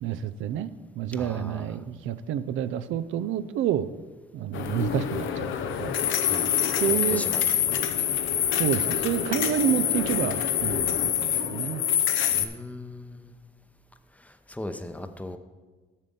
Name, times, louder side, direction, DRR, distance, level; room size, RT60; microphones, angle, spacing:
voice 1, 0.0-0.7 1.0-3.9 4.3-6.0 6.8-7.2 8.6-11.8, right 10 dB, 80° right, 14 dB, 0.5 m, -29 dB
voice 2, 1.1-1.8 6.2-7.4 12.3-13.3 14.1-15.4, left 1 dB, 5° left, 8 dB, 0.7 m, -39 dB
sound 1, 4.5-12.5, left 9 dB, 80° left, 0.6 m, -26 dB
7.4 x 6.7 x 5.4 m, 1.3 s
cardioid pair, 90°, 20 cm